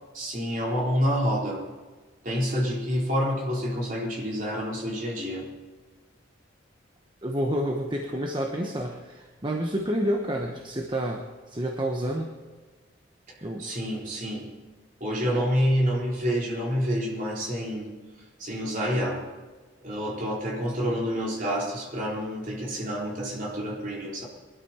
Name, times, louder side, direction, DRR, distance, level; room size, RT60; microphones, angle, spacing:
voice 1, 0.1-1.6 2.2-5.5 13.6-14.5 15.0-17.9 18.4-19.2 19.8-24.2, equal, 40° right, -3 dB, 4.1 m, -28 dB
voice 2, 7.2-12.3 13.4-13.7 15.2-15.4, equal, 25° right, 2 dB, 1.1 m, -29 dB
21.5 x 12.5 x 4.4 m, 1.3 s
head